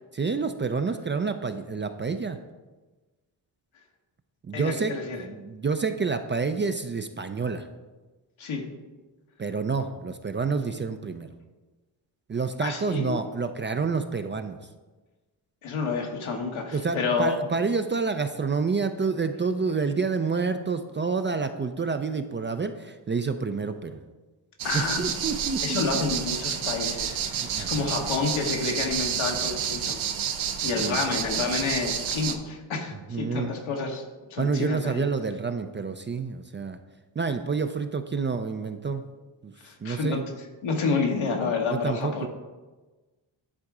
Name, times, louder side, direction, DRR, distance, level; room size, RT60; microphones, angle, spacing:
voice 1, 0.1-2.4 4.4-7.7 9.4-11.3 12.3-14.6 16.7-24.0 24.7-26.0 27.4-28.0 30.7-31.0 31.4-31.8 32.9-33.5 34.4-36.8 37.2-39.0 39.4-39.5 39.8-40.2 41.7-42.3, right 4 dB, 25° right, 8 dB, 0.4 m, -28 dB
voice 2, 4.5-5.2 8.4-8.6 12.6-13.2 15.6-17.3 24.6-25.0 25.6-30.0 30.6-34.0 34.3-35.0 39.6-40.2 40.6-42.3, left 4 dB, 80° left, 2 dB, 1.4 m, -29 dB
sound 1, 24.6-32.4, right 8 dB, 75° right, 0.8 m, -30 dB
9.9 x 3.8 x 4.8 m, 1.2 s
cardioid pair, 65°, 48 cm